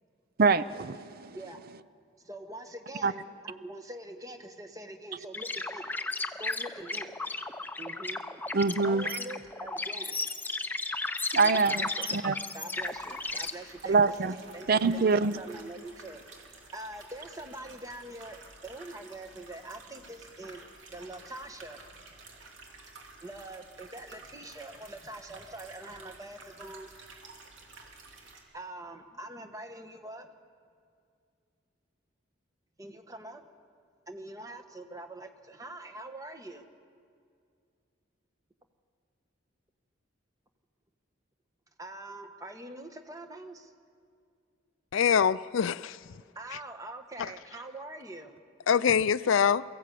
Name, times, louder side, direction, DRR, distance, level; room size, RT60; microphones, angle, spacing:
voice 1, 0.4-1.4 3.0-3.1 8.5-9.2 11.3-12.3 13.9-14.3 14.7-15.4, right 4 dB, 50° right, 0.5 m, -25 dB
voice 2, 2.2-6.0 6.4-7.2 7.8-8.3 8.8-10.2 11.4-12.1 12.5-14.0 14.5-14.7 14.9-16.2 16.7-20.6 20.9-21.8 23.2-26.9 28.5-30.3 32.8-33.5 34.1-36.7 41.8-43.7 46.3-48.4, right 1 dB, 15° right, 1.2 m, -44 dB
sound 1, 5.3-13.5, left 3 dB, 10° left, 0.6 m, -34 dB
sound 2, 12.8-28.4, right 3 dB, 75° right, 2.9 m, -52 dB
voice 3, 44.9-46.0 47.2-47.3 48.7-49.6, left 7 dB, 80° left, 0.4 m, -24 dB
23.0 x 15.0 x 8.5 m
head